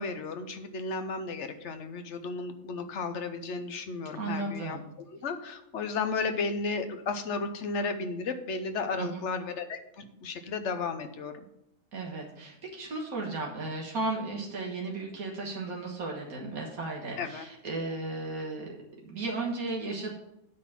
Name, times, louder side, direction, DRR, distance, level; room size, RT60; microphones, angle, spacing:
voice 1, 0.0-4.8 5.1-11.4 17.2-17.5, left 4 dB, 60° left, 8 dB, 1.1 m, -34 dB
voice 2, 4.1-4.8 9.0-9.2 11.9-18.8 19.0-20.1, right 3 dB, 85° right, -2 dB, 2.0 m, -35 dB
9.2 x 4.1 x 7.4 m, 0.81 s
omnidirectional pair, 1.5 m